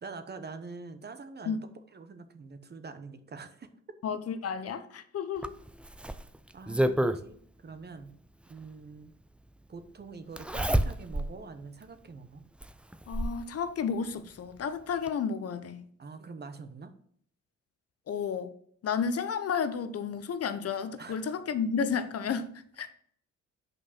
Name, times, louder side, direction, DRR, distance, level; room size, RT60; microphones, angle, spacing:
voice 1, 0.0-3.7 6.5-8.2 8.5-9.1 9.7-12.4 16.0-16.9 21.0-21.3, right 4 dB, 35° right, 1.0 m, -45 dB
voice 2, 4.0-5.6 13.1-15.8 18.1-18.5 18.8-22.5 22.8-22.9, left 6 dB, 55° left, 0.8 m, -32 dB
Zipper (clothing), 5.4-7.2 8.6-8.7 10.4-11.3 11.8-11.9 12.6-13.4 14.6-14.7 15.1-15.2, right 1 dB, 5° right, 0.4 m, -29 dB
6.2 x 5.3 x 5.9 m
cardioid pair, 90°, 30 cm